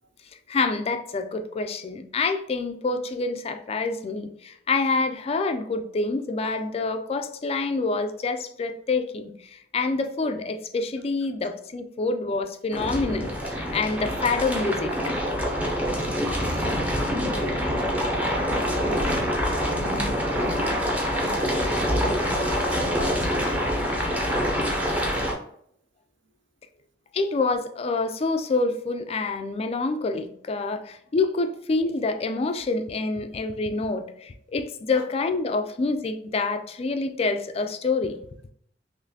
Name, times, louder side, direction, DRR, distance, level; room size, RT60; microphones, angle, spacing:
voice 1, 0.5-14.9 27.1-38.2, left 3 dB, 35° left, 7 dB, 0.3 m, -27 dB
sound 1, 12.7-25.3, equal, 10° right, 0.7 m, -25 dB
voice 2, 18.3-23.9, right 2 dB, 75° right, 6 dB, 0.6 m, -40 dB
4.0 x 3.0 x 2.7 m, 0.69 s
head